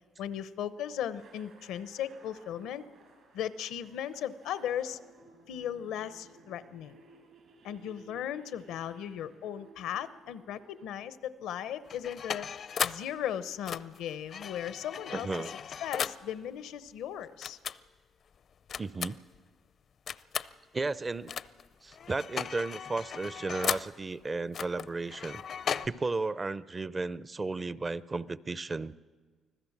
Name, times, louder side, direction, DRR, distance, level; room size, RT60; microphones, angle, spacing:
voice 1, 0.2-2.8 3.3-5.0 5.5-7.0 7.6-12.5 12.8-15.3 15.8-17.6, left 10 dB, 90° left, 15 dB, 0.8 m, -37 dB
sound 1, 1.2-10.9, right 3 dB, 75° right, 5.3 m, -58 dB
sound 2, 11.9-13.1 13.7-16.3 17.4-17.8 18.7-19.4 20.1-20.5 21.3-21.7 21.9-24.0 24.5-25.9, left 7 dB, 55° left, 0.5 m, -36 dB
voice 2, 15.1-15.5 18.8-19.2 20.7-21.3 21.8-25.4 25.8-28.9, right 3 dB, 30° right, 18 dB, 0.5 m, -34 dB
25.5 x 15.5 x 7.2 m, 1.4 s
cardioid pair, 90°, 0 cm